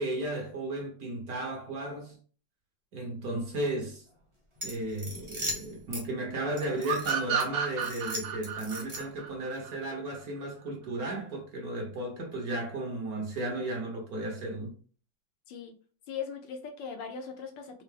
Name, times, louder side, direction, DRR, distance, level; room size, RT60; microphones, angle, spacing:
voice 1, 0.0-2.2 2.9-4.0 4.6-14.7, right 1 dB, 55° right, 1.3 m, -34 dB
sound 1, 4.6-6.0 6.6-7.4 7.8-9.2, equal, 30° right, 0.6 m, -38 dB
sound 2, 6.8-10.2, right 8 dB, 80° right, 1.5 m, -32 dB
voice 2, 16.1-17.8, left 6 dB, 75° left, 1.3 m, -39 dB
4.5 x 2.0 x 3.3 m
omnidirectional pair, 2.1 m